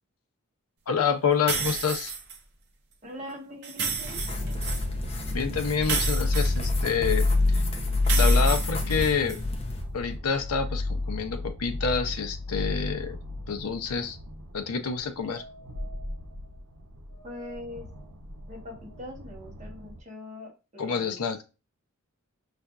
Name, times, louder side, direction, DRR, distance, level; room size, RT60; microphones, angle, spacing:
voice 1, 0.9-2.1 5.3-7.6 8.2-9.4 9.9-13.2 13.5-14.2 14.5-15.4 20.8-21.4, left 6 dB, 90° left, 7 dB, 0.6 m, -28 dB
sound 1, 1.5-2.4 3.6-4.8 5.8-7.2 8.0-9.4, right 5 dB, 50° right, 0.6 m, -31 dB
voice 2, 3.0-4.2 17.2-17.9 18.5-21.2, left 1 dB, 30° right, -1 dB, 1.1 m, -42 dB
sound 2, 4.0-9.8, left 1 dB, 25° left, 0.5 m, -36 dB
sound 3, 4.0-20.0, left 2 dB, 85° right, 0.8 m, -29 dB
5.4 x 2.5 x 2.3 m, 0.29 s
head